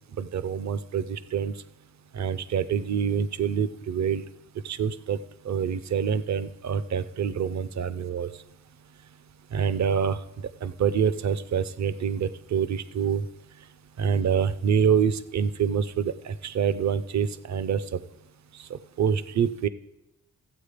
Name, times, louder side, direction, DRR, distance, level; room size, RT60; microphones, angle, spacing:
voice 1, 0.2-1.5 2.1-4.2 4.6-5.2 5.4-8.3 9.5-10.2 10.6-13.3 14.0-18.0 18.6-19.7, right 7 dB, 55° right, 15 dB, 0.6 m, -26 dB
14.5 x 8.1 x 5.1 m, 0.93 s
wide cardioid pair, 155°, 33 cm